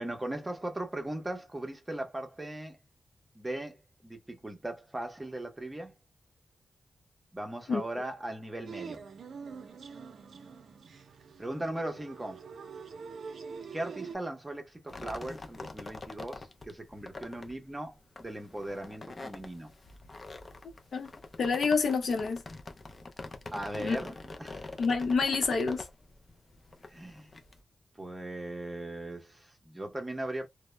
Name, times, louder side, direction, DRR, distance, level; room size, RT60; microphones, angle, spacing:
voice 1, 0.0-2.8 3.3-5.9 7.3-9.0 11.4-12.5 13.7-19.7 23.5-24.7 26.9-27.3 28.0-30.5, right 1 dB, 15° right, 0.7 m, -38 dB
sound 1, 8.7-14.2, right 5 dB, 80° right, 0.4 m, -45 dB
sound 2, 14.9-27.6, left 3 dB, 35° left, 0.4 m, -45 dB
voice 2, 21.4-22.4 23.8-24.0 24.8-25.9, left 4 dB, 75° left, 0.6 m, -28 dB
2.0 x 2.0 x 3.1 m
wide cardioid pair, 115°, 0 cm